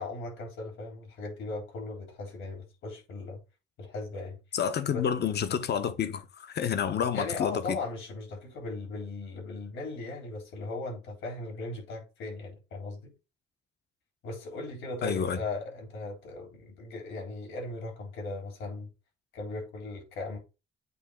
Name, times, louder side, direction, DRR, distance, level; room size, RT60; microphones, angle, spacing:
voice 1, 0.0-3.4 3.8-4.4 4.9-5.1 7.1-13.1 14.2-18.9 19.3-20.4, left 3 dB, 80° left, 3.8 m, -38 dB
voice 2, 4.5-7.8 15.0-15.4, left 8 dB, 55° left, 1.0 m, -29 dB
8.3 x 2.8 x 4.9 m
cardioid pair, 90°, 20 cm